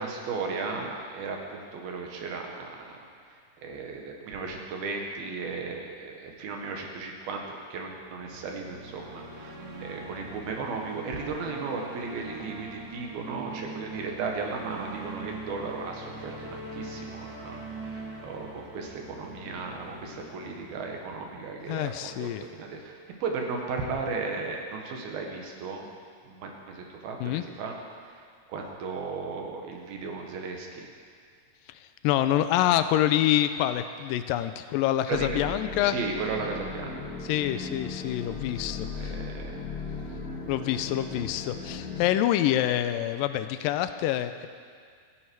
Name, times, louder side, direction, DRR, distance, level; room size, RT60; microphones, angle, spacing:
voice 1, 0.0-3.0 3.6-25.8 26.3-27.8 28.5-30.9 35.1-35.4 35.8-36.9 39.0-39.6, right 4 dB, 90° right, 1 dB, 3.5 m, -35 dB
sound 1, 7.8-22.0, right 2 dB, 60° right, 5.4 m, -42 dB
voice 2, 21.7-22.4 27.2-27.4 32.0-36.0 37.2-39.2 40.5-44.5, left 12 dB, 80° left, 10 dB, 2.2 m, -26 dB
sound 2, 35.1-42.1, left 4 dB, 30° left, 2.0 m, -37 dB
25.0 x 9.7 x 4.7 m, 2.1 s
omnidirectional pair, 4.2 m